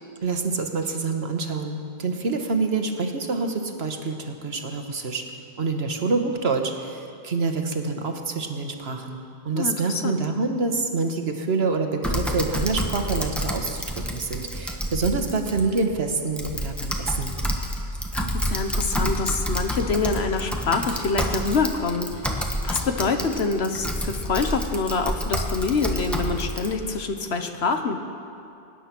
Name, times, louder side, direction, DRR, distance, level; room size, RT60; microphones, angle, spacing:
voice 1, 0.2-5.2 5.6-17.3, right 4 dB, 75° right, 5 dB, 1.5 m, -26 dB
voice 2, 9.5-10.2 18.1-22.1 22.6-28.0, left 4 dB, 80° left, 6 dB, 1.3 m, -26 dB
Typing, 12.0-26.7, equal, ahead, 1.3 m, -29 dB
23.5 x 10.0 x 6.1 m, 2.5 s
omnidirectional pair, 1.1 m